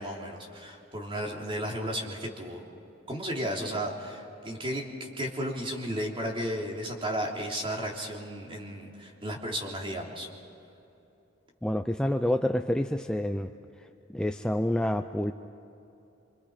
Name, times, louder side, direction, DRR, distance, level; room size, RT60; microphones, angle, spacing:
voice 1, 0.0-2.6 3.1-10.3, equal, 30° right, 0 dB, 3.1 m, -34 dB
voice 2, 11.6-13.5 14.1-15.3, left 1 dB, 5° left, 6 dB, 0.5 m, -28 dB
26.5 x 26.0 x 5.1 m, 2.9 s
head